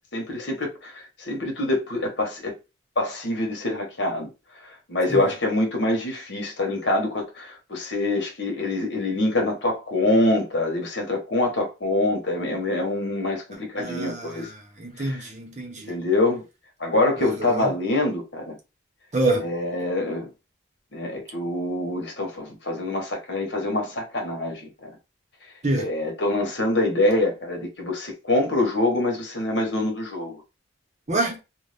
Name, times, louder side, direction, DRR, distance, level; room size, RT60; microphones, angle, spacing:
voice 1, 0.1-2.5 3.0-4.3 4.9-14.5 15.0-15.1 15.9-16.4 16.8-18.5 19.4-20.3 20.9-24.9 25.8-30.4, left 2 dB, 70° left, 1.2 m, -25 dB
voice 2, 13.8-16.0 17.2-17.7 19.1-19.5 25.6-25.9 31.1-31.4, right 2 dB, 35° right, 0.8 m, -27 dB
2.6 x 2.3 x 3.3 m
head